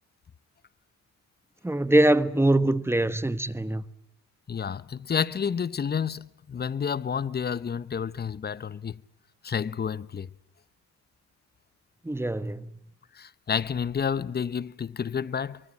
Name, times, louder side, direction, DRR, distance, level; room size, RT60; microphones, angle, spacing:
voice 1, 1.6-3.8 12.0-12.7, right 1 dB, 10° right, 1.1 m, -23 dB
voice 2, 4.5-9.0 9.4-10.3 13.1-15.6, left 7 dB, 35° left, 0.9 m, -30 dB
24.0 x 23.5 x 7.5 m
cardioid pair, 90°, 30 cm